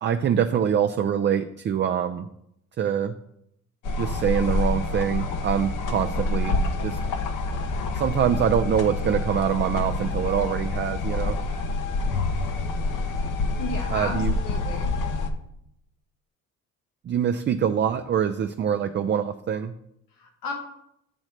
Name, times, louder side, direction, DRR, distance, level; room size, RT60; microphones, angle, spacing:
voice 1, 0.0-2.3 2.8-3.2 4.0-7.0 7.9-11.4 13.9-14.3 17.1-19.7, right 8 dB, 35° right, 8 dB, 0.4 m, -24 dB
sound 1, 3.8-15.3, left 2 dB, 65° left, 0.9 m, -27 dB
voice 2, 13.6-14.9 20.1-20.5, left 3 dB, 85° left, 1 dB, 1.4 m, -34 dB
8.6 x 3.1 x 6.4 m, 0.78 s
cardioid pair, 80°, 33 cm